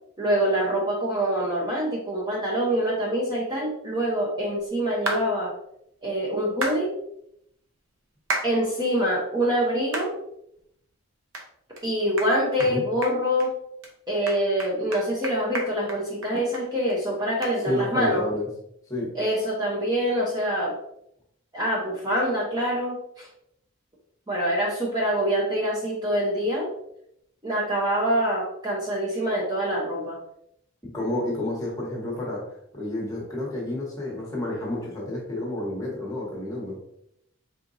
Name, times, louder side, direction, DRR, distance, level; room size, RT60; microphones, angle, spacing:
voice 1, 0.2-5.5 6.0-7.0 8.4-10.2 11.8-13.6 14.1-18.2 19.1-20.8 21.5-23.3 24.3-26.7 27.4-30.2, equal, 20° right, -4 dB, 0.8 m, -25 dB
sound 1, 5.1-5.2 6.6-6.8 8.3-8.5 9.0-9.1 9.9-10.1 10.6-10.7 11.3-11.5 11.8-11.9 12.2-12.3 12.6-12.7 13.0-13.5 13.8-13.9 14.3-16.6 16.9-17.0 17.4-17.5, right 2 dB, 75° right, 0.8 m, -31 dB
voice 2, 17.7-18.5 18.9-19.1 30.8-32.4 32.7-36.8, left 1 dB, 15° left, -3 dB, 1.1 m, -30 dB
4.4 x 3.7 x 2.6 m, 0.75 s
head